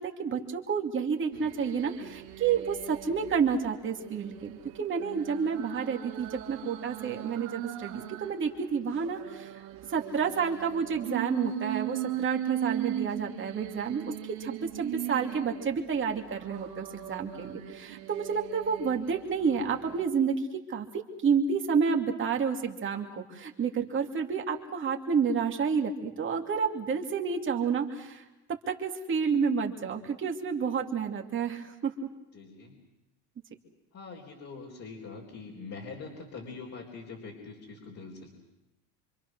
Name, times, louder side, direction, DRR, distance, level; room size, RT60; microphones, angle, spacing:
voice 1, 0.0-9.5 9.9-20.4 20.7-28.2 28.5-31.9, right 6 dB, 35° right, 2 dB, 2.8 m, -30 dB
sound 1, 1.3-3.4 3.8-8.4 8.8-15.8 16.3-19.2 19.7-20.0, right 13 dB, 85° right, 2.1 m, -38 dB
voice 2, 19.4-19.7 32.3-32.8 33.9-38.3, left 4 dB, 45° left, -1 dB, 4.2 m, -44 dB
27.0 x 25.0 x 6.3 m, 0.97 s
cardioid pair, 120°, 37 cm